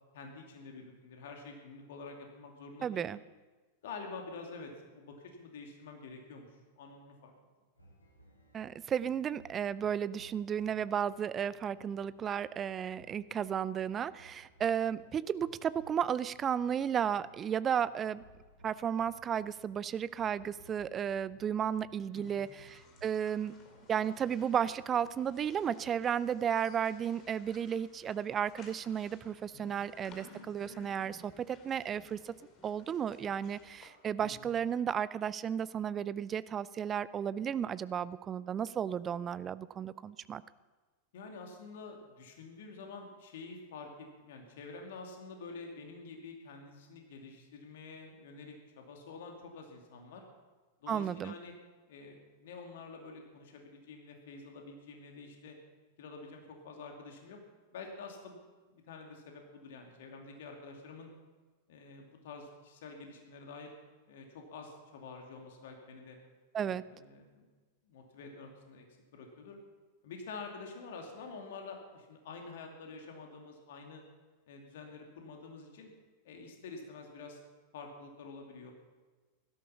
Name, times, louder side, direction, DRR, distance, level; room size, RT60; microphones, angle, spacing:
voice 1, 0.1-3.1 3.8-7.3 22.1-22.4 29.5-29.7 34.2-34.5 41.1-50.2 50.8-51.5 51.9-55.6 56.0-57.4 57.7-58.4 58.7-61.1 61.7-63.7 64.1-66.2 66.6-67.5 67.9-68.8 69.1-69.6 70.0-74.0 74.5-75.9 76.2-77.4 77.7-78.7, left 4 dB, 55° left, 2 dB, 2.5 m, -48 dB
voice 2, 2.8-3.2 8.5-18.2 18.6-23.5 23.9-32.3 32.6-40.4 50.9-51.3 66.5-66.8, right 8 dB, 25° right, 18 dB, 0.5 m, -33 dB
sound 1, 7.8-26.4, right 1 dB, 80° left, 3.0 m, -61 dB
sound 2, 22.2-33.9, left 3 dB, 30° left, 2.6 m, -58 dB
16.5 x 13.0 x 5.7 m, 1.3 s
figure-of-eight pair, 90°, 0 cm